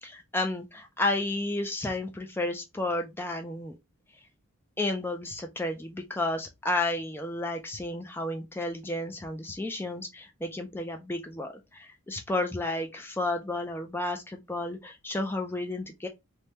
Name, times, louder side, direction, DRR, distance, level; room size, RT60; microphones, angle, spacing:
voice 1, 0.0-3.7 4.8-16.1, left 2 dB, 10° left, 0.3 m, -32 dB
3.2 x 2.2 x 2.8 m
head